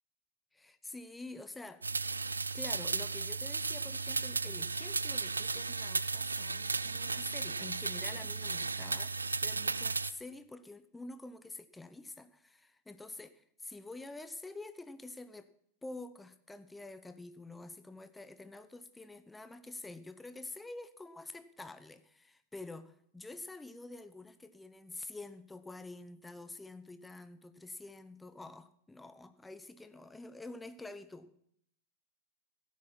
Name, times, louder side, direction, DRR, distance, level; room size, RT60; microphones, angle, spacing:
voice 1, 0.5-1.8 2.5-15.5 15.8-31.5, left 2 dB, 10° left, 12 dB, 0.9 m, -48 dB
sound 1, 1.8-10.1, right 4 dB, 90° right, 0.5 m, -35 dB
16.0 x 10.5 x 5.5 m, 0.70 s
figure-of-eight pair, 95°, 0 cm